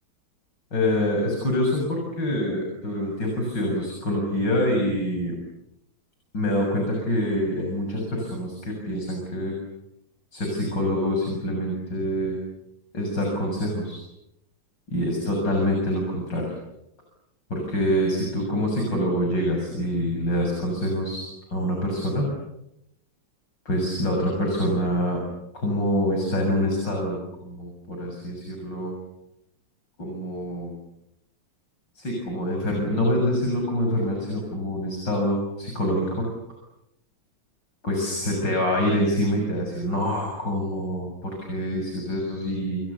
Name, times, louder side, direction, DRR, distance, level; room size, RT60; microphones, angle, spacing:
voice 1, 0.7-5.4 6.3-9.6 10.3-12.4 12.9-14.0 14.9-16.5 17.5-22.2 23.7-25.2 25.5-28.9 30.0-30.7 32.0-36.3 37.8-42.8, equal, 55° left, 1 dB, 7.9 m, -26 dB
29.5 x 28.5 x 7.0 m, 0.84 s
omnidirectional pair, 2.3 m